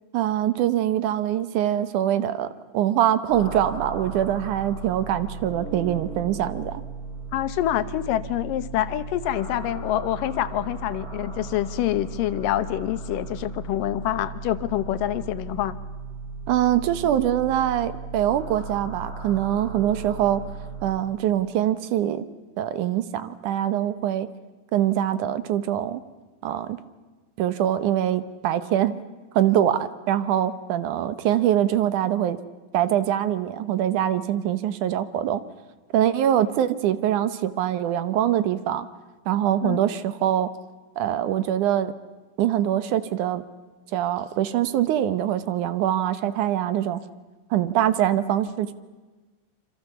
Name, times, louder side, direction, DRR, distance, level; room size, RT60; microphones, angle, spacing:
voice 1, 0.1-6.8 16.5-20.4 20.8-22.3 22.6-24.3 24.7-26.0 26.4-26.8 27.4-29.0 29.3-32.4 32.7-35.4 35.9-38.9 39.3-40.5 41.0-41.9 42.4-43.4 43.9-47.0 47.5-48.7, right 11 dB, 75° right, 13 dB, 2.4 m, -23 dB
sound 1, 3.3-20.9, right 4 dB, 15° right, 6.2 m, -36 dB
voice 2, 7.3-15.8 39.6-39.8, left 13 dB, 90° left, 13 dB, 2.6 m, -26 dB
27.0 x 25.5 x 7.1 m, 1.3 s
omnidirectional pair, 3.7 m